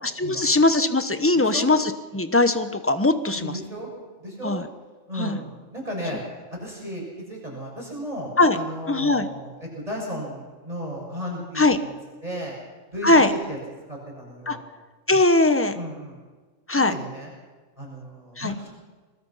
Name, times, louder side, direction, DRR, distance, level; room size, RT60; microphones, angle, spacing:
voice 1, 0.0-3.5 4.4-4.7 5.2-5.4 8.4-8.6 8.9-9.3 11.5-11.8 13.0-13.3 14.5-14.6 15.1-15.8 16.7-16.9 18.4-18.5, left 2 dB, 10° left, 9 dB, 1.1 m, -20 dB
voice 2, 1.3-1.7 3.3-3.9 4.2-4.6 5.1-6.2 6.5-11.9 12.2-12.5 12.9-13.6 13.9-14.6 15.7-16.2 16.9-17.3 17.8-18.7, equal, 25° right, -2 dB, 6.7 m, -34 dB
25.0 x 20.5 x 5.8 m, 1.3 s
omnidirectional pair, 1.4 m